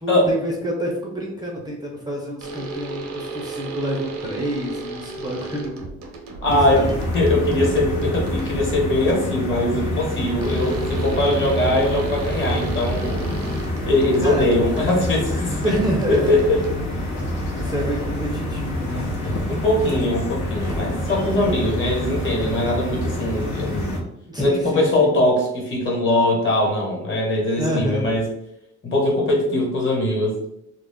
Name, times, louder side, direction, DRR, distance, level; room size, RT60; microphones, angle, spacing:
voice 1, 0.0-5.8 6.5-6.9 14.2-14.6 14.9-15.1 15.6-16.3 17.6-19.3 24.3-25.1 27.6-28.1, equal, 15° right, -1 dB, 0.5 m, -28 dB
sound 1, 2.4-9.0 10.4-17.1, right 3 dB, 65° right, 0.6 m, -35 dB
voice 2, 6.4-6.8 7.1-13.2 13.9-15.8 16.1-16.6 19.5-24.0 24.4-28.2 28.8-30.4, left 1 dB, 40° left, -2 dB, 1.1 m, -21 dB
sound 2, 6.5-24.0, left 1 dB, 75° left, 0.7 m, -27 dB
2.3 x 2.0 x 3.4 m, 0.81 s
cardioid pair, 90°, 30 cm